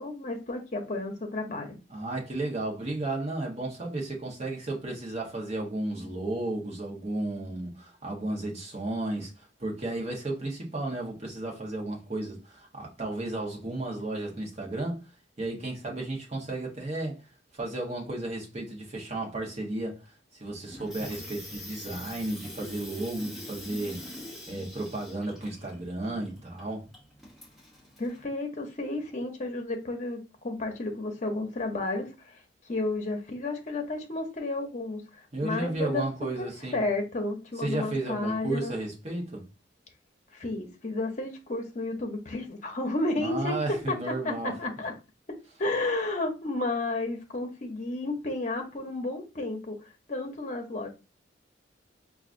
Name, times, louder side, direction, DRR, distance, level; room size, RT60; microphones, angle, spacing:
voice 1, 0.0-1.8 28.0-32.4 32.7-36.0 36.4-38.7 40.3-43.6 43.9-44.0 44.2-44.9 45.6-50.9, left 2 dB, 40° left, 0.8 m, -32 dB
voice 2, 1.9-15.0 15.4-24.0 24.5-26.9 35.3-36.8 37.6-39.5 43.2-44.5, right 2 dB, 35° right, 1.1 m, -33 dB
Water tap faucet / Sink (filling or washing), 20.6-28.2, left 1 dB, ahead, 0.8 m, -44 dB
4.8 x 2.5 x 2.5 m
head